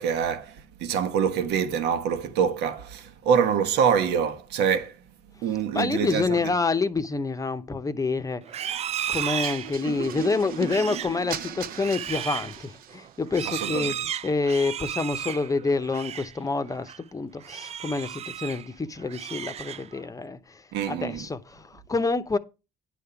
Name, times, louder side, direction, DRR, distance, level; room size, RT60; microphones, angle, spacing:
voice 1, 0.0-5.0 5.4-6.5 13.4-14.0 20.7-21.3, right 7 dB, 85° right, 1.3 m, -25 dB
voice 2, 5.7-8.4 9.1-22.4, left 3 dB, 20° left, 0.7 m, -28 dB
Livestock farm animals working animals, 8.4-16.4 16.7-17.0 17.4-18.7 19.0-20.1, right 10 dB, 40° right, 0.3 m, -34 dB
sound 1, 9.1-13.1, right 9 dB, 60° right, 0.7 m, -37 dB
10.5 x 3.6 x 6.9 m
cardioid pair, 110°, 17 cm